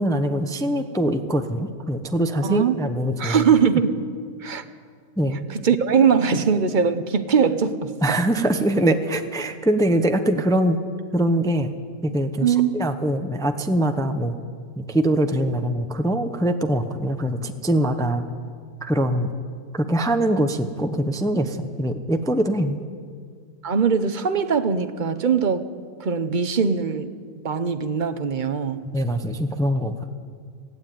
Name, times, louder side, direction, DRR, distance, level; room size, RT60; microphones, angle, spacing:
voice 1, 0.0-3.4 5.2-5.4 8.0-10.8 11.1-11.7 12.0-14.3 14.8-18.2 18.8-19.3 19.7-22.8 28.9-29.9, right 1 dB, 5° left, 7 dB, 0.7 m, -23 dB
voice 2, 3.2-4.0 4.4-4.6 5.5-7.9 12.4-12.7 23.6-25.6 26.0-27.1 27.4-28.8, right 6 dB, 35° right, 10 dB, 1.0 m, -21 dB
21.0 x 15.5 x 9.2 m, 2.1 s
omnidirectional pair, 1.6 m